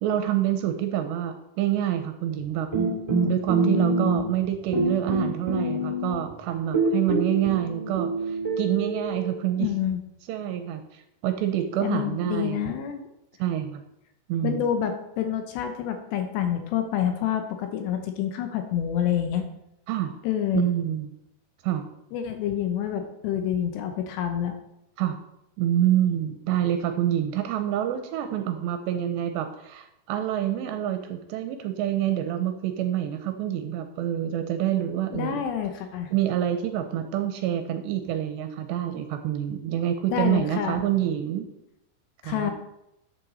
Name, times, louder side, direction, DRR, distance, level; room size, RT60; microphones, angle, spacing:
voice 1, 0.0-2.7 3.2-9.7 10.3-12.7 13.4-13.8 14.3-14.6 19.9-20.1 20.5-21.1 21.6-21.9 25.0-25.2 25.6-35.4 36.1-41.5 42.2-42.5, right 11 dB, 80° right, 7 dB, 2.6 m, -27 dB
sound 1, 2.7-4.5 4.7-6.3 6.7-9.4, right 2 dB, 30° right, 0.6 m, -26 dB
voice 2, 9.6-10.0 11.8-13.1 14.4-19.5 20.2-20.7 22.1-24.6 35.1-36.1 40.1-40.8 42.2-42.5, left 9 dB, 75° left, 6 dB, 2.7 m, -27 dB
12.0 x 7.8 x 4.0 m, 0.85 s
omnidirectional pair, 5.4 m